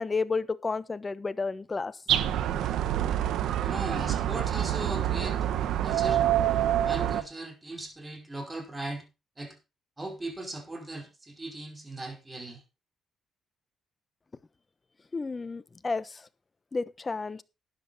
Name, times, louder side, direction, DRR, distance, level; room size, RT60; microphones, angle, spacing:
voice 1, 0.0-1.9 15.1-16.2 16.7-17.4, left 4 dB, 25° left, 1.0 m, -31 dB
sound 1, 2.1-7.2, right 11 dB, 80° right, 1.1 m, -26 dB
voice 2, 3.6-5.4 5.8-6.2 6.8-9.0 9.4-9.5 10.0-12.6, right 2 dB, 20° right, 5.1 m, -38 dB
12.5 x 10.5 x 4.2 m
cardioid pair, 90°, 0 cm